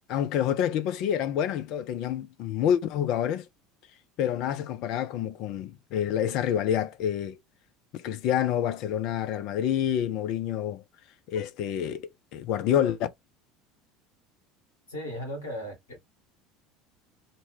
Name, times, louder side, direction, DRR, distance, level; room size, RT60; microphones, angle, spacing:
voice 1, 0.1-3.5 4.2-7.4 8.0-10.8 11.3-13.0, left 10 dB, 50° left, 0.4 m, -28 dB
voice 2, 14.9-16.1, equal, 70° left, 1.4 m, -37 dB
2.7 x 2.2 x 3.1 m
figure-of-eight pair, 70°, 0 cm